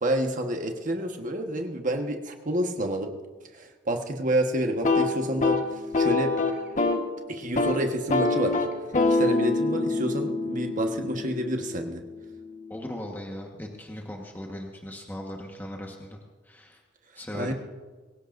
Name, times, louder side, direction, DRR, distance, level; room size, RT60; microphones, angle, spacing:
voice 1, 0.0-3.1 3.5-5.6 6.0-6.3 7.3-8.6 9.1-12.0 17.3-17.5, right 1 dB, 45° right, 4 dB, 1.3 m, -28 dB
sound 1, 4.7-7.1 7.4-7.8 8.1-12.0, left 3 dB, 40° left, 1.3 m, -25 dB
voice 2, 12.7-16.2 16.4-16.8 17.1-17.5, left 1 dB, 10° left, 0 dB, 1.3 m, -38 dB
23.0 x 16.5 x 2.6 m, 1.4 s
head